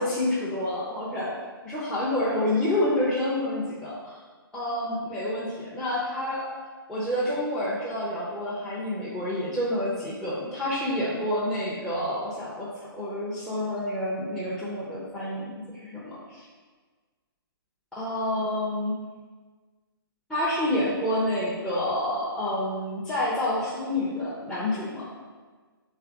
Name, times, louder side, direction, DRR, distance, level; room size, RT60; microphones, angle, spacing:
voice 1, 0.0-1.3 1.7-4.2 4.5-6.4 6.9-12.7 12.9-16.4 17.9-19.0 20.3-25.0, left 1 dB, 5° left, -10 dB, 0.6 m, -28 dB
3.3 x 3.2 x 4.8 m, 1.4 s
figure-of-eight pair, 135°, 13 cm